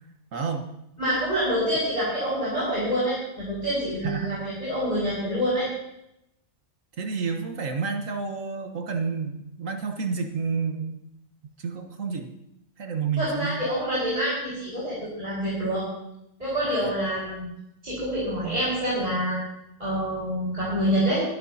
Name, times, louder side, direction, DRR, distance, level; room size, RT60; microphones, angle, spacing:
voice 1, 0.3-0.7 4.0-4.3 7.0-11.0 11.6-12.3 12.8-13.6 16.6-16.9, right 5 dB, 80° right, 5 dB, 1.7 m, -30 dB
voice 2, 1.0-5.7 13.2-15.9 16.4-17.5 17.8-19.4 19.8-21.2, equal, 35° right, -9 dB, 5.2 m, -26 dB
22.0 x 12.0 x 2.8 m, 0.83 s
omnidirectional pair, 1.3 m